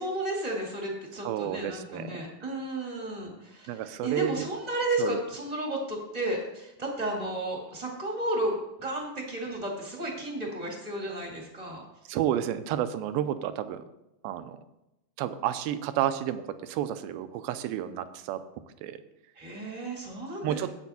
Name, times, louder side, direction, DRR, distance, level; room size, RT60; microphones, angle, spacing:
voice 1, 0.0-11.8 19.4-20.7, right 1 dB, 25° right, -1 dB, 0.8 m, -33 dB
voice 2, 1.2-2.2 3.7-4.5 5.0-5.2 12.1-13.8 14.2-14.6 15.2-18.4 18.8-19.0 20.4-20.7, right 11 dB, 90° right, 11 dB, 2.4 m, -31 dB
10.5 x 8.1 x 4.2 m, 0.90 s
omnidirectional pair, 4.2 m